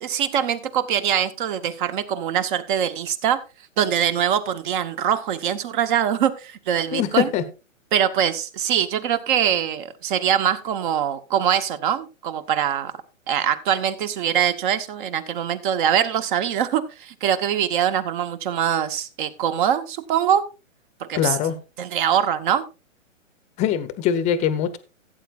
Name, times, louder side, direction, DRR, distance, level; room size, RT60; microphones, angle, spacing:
voice 1, 0.0-3.4 3.8-7.3 7.9-12.9 13.3-20.5 21.0-21.4 21.8-22.6, right 9 dB, 40° right, 1.1 m, -23 dB
voice 2, 6.9-7.4 21.1-21.6 23.6-24.8, left 9 dB, 15° left, 0.8 m, -22 dB
16.5 x 8.6 x 2.4 m
hypercardioid pair, 135°, 40 cm